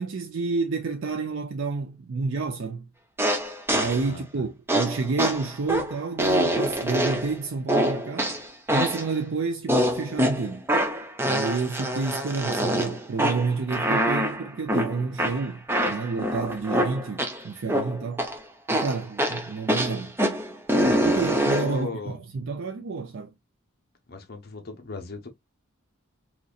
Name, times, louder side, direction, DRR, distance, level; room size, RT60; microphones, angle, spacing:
voice 1, 0.0-2.8 3.7-8.3 8.7-10.6 11.3-18.2 18.7-20.1 20.9-23.3, right 4 dB, 65° right, 0.5 m, -29 dB
sound 1, 3.2-4.1 4.7-7.4 7.7-9.1 9.7-17.4 17.7-18.4 18.7-21.8, equal, 10° right, 0.6 m, -25 dB
voice 2, 4.0-4.4 20.9-21.2 21.5-22.2 24.1-25.3, left 3 dB, 50° left, 0.8 m, -37 dB
4.1 x 2.9 x 2.4 m
head